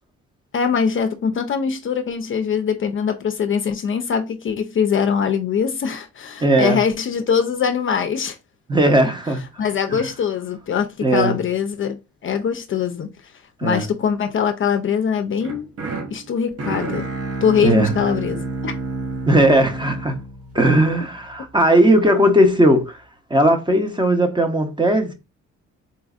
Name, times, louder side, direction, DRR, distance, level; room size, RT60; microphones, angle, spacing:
voice 1, 0.5-8.4 9.6-13.1 13.6-15.7 16.1-17.1 17.4-18.7, left 7 dB, 45° left, 0.4 m, -22 dB
voice 2, 6.4-6.8 8.7-9.4 9.9-10.0 11.0-11.4 13.6-13.8 17.6-17.9 19.3-20.2 20.5-23.0 23.3-25.1, right 1 dB, 15° right, 0.7 m, -17 dB
sound 1, 15.4-21.5, right 3 dB, 50° right, 0.8 m, -30 dB
4.0 x 2.5 x 2.4 m
cardioid pair, 90°, 30 cm